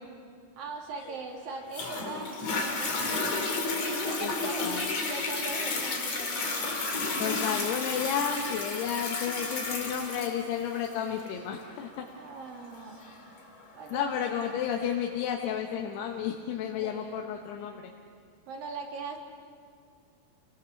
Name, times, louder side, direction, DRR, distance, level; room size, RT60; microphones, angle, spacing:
voice 1, 0.6-3.5 3.8-4.7 5.1-6.9 12.2-13.1 13.7-14.1 16.8-17.3 18.5-19.2, right 4 dB, 60° right, 0 dB, 4.1 m, -40 dB
Toilet flush, 1.7-14.8 15.4-15.5, left 3 dB, 45° left, 3.6 m, -32 dB
voice 2, 7.2-12.1 13.9-17.9, left 8 dB, 85° left, 2 dB, 3.2 m, -32 dB
30.0 x 19.0 x 7.1 m, 2.3 s
omnidirectional pair, 4.6 m